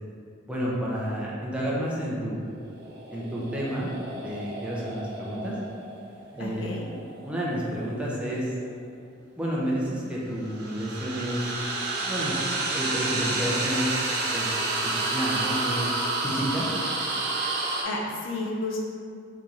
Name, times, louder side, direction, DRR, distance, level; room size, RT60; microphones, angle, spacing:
voice 1, 0.5-2.5 3.1-3.9 4.2-5.5 6.3-6.7 7.2-8.5 9.4-11.5 12.0-12.3 12.7-14.0 14.3-14.5 14.8-15.9 16.2-16.7, equal, 5° right, -6 dB, 0.5 m, -30 dB
sound 1, 2.7-7.8 10.3-17.8, right 2 dB, 55° right, 0.5 m, -30 dB
voice 2, 6.4-6.8 17.8-18.8, left 2 dB, 70° left, -1 dB, 0.5 m, -31 dB
3.0 x 2.7 x 3.5 m, 2.3 s
head